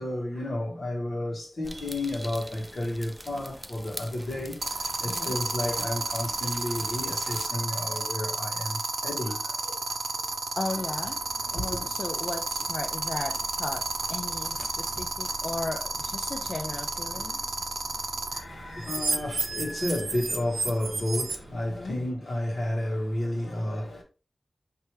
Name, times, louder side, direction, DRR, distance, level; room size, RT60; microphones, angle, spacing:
voice 1, 0.0-9.8 10.1-10.3 11.6-11.8 18.3-24.0, left 1 dB, 80° left, 1.5 m, -32 dB
sound 1, 1.6-7.5, equal, ahead, 0.4 m, -43 dB
sound 2, 1.7-2.0 4.6-18.4 18.8-21.4, right 3 dB, 85° right, 0.6 m, -30 dB
voice 2, 5.1-5.4 10.6-13.8 14.1-17.4 21.7-22.0, left 2 dB, 60° left, 0.5 m, -36 dB
sound 3, 10.7-22.1, right 2 dB, 35° right, 0.9 m, -47 dB
4.6 x 2.9 x 3.2 m
wide cardioid pair, 100°, 0 cm